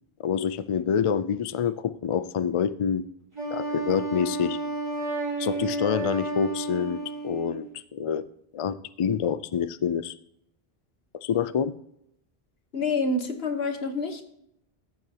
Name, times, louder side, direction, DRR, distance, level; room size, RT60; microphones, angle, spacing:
voice 1, 0.2-3.0 3.5-4.6 5.4-8.2 8.5-10.1 11.1-11.7, left 7 dB, 50° left, 15 dB, 0.4 m, -27 dB
Wind instrument woodwind instrument, 3.3-7.7, right 2 dB, 30° right, 4.5 m, -31 dB
voice 2, 12.7-14.2, left 3 dB, 80° left, 7 dB, 1.4 m, -27 dB
13.5 x 7.9 x 2.8 m, 0.75 s
omnidirectional pair, 1.0 m